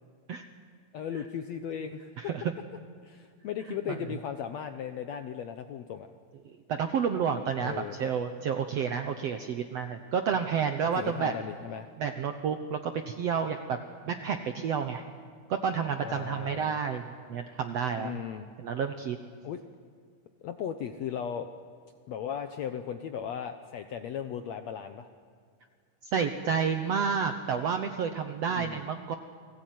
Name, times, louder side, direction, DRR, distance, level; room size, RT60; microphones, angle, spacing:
voice 1, 0.9-2.1 3.0-6.1 7.6-8.1 11.0-11.9 16.0-16.8 18.0-18.5 19.4-19.6 20.4-21.5 22.1-25.1 28.4-28.8, left 8 dB, 75° left, 8 dB, 1.6 m, -37 dB
voice 2, 6.7-11.3 12.0-13.8 14.1-15.0 15.5-17.0 17.3-18.2 18.6-19.2 26.1-29.1, right 6 dB, 70° right, 7 dB, 1.5 m, -30 dB
30.0 x 20.0 x 9.4 m, 2.1 s
omnidirectional pair, 4.2 m